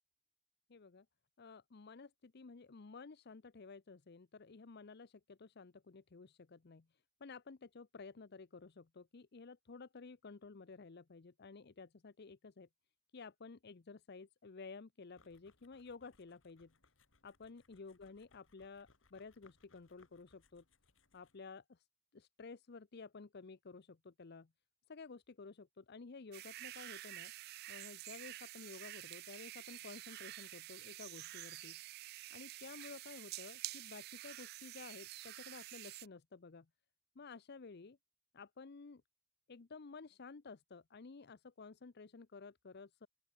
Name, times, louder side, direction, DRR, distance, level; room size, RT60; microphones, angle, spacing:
voice 1, 0.7-1.1 1.4-12.7 13.1-16.7 17.2-20.6 21.1-21.9 22.1-24.5 24.9-27.3 27.7-31.8 32.3-36.7 37.2-38.0 38.3-39.0 39.5-43.1, left 4 dB, 55° left, 0.7 m, -53 dB
sound 1, 15.2-21.5, left 3 dB, 70° left, 3.1 m, -72 dB
sound 2, 26.3-36.1, right 16 dB, 50° right, 0.3 m, -49 dB
open air
head